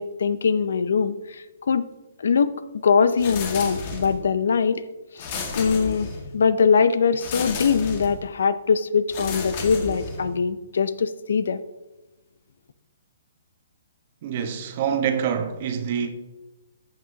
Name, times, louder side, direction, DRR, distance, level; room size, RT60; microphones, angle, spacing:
voice 1, 0.0-1.8 2.2-2.5 2.8-4.8 5.2-5.3 5.5-6.1 6.3-11.6, left 6 dB, 75° left, 0.5 m, -22 dB
sound 1, 3.2-4.3 5.2-6.4 7.2-8.2 9.1-10.4, left 4 dB, 40° left, 1.7 m, -33 dB
voice 2, 14.2-16.1, right 8 dB, 45° right, 1.1 m, -26 dB
14.0 x 5.9 x 2.8 m
hypercardioid pair, 145°, 0 cm